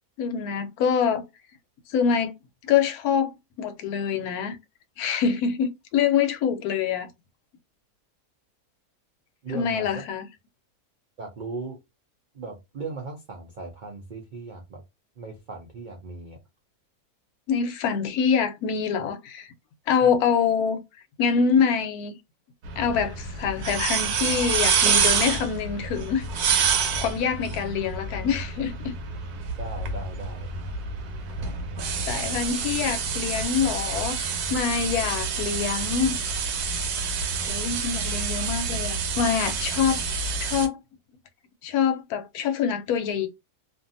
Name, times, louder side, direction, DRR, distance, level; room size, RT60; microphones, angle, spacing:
voice 1, 0.2-1.2 1.9-2.3 2.6-3.3 3.6-4.6 5.0-7.1 9.5-10.2 17.5-19.5 19.9-20.8 21.2-22.1 22.8-28.9 32.1-36.2 37.5-40.0 40.4-40.8 41.6-43.3, left 7 dB, 80° left, 1.1 m, -25 dB
voice 2, 9.4-10.0 11.2-11.8 12.3-14.8 15.2-16.4 20.0-20.1 29.6-30.5, right 3 dB, 75° right, 0.4 m, -37 dB
sound 1, 22.6-40.7, right 5 dB, 90° right, 1.2 m, -28 dB
2.6 x 2.4 x 2.5 m
omnidirectional pair, 1.6 m